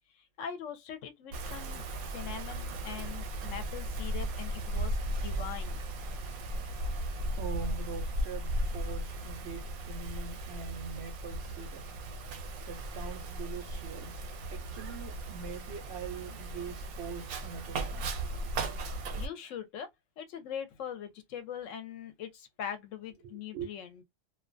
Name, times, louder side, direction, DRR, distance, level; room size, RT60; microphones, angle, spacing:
voice 1, 0.1-5.8 19.2-19.9 20.2-24.0, left 8 dB, 70° left, 0.9 m, -42 dB
Wind, 1.3-19.3, right 1 dB, 90° right, 1.0 m, -36 dB
voice 2, 7.3-11.9 12.7-14.2 14.5-18.4 23.5-23.7, right 6 dB, 65° right, 0.7 m, -43 dB
2.3 x 2.2 x 2.5 m
omnidirectional pair, 1.4 m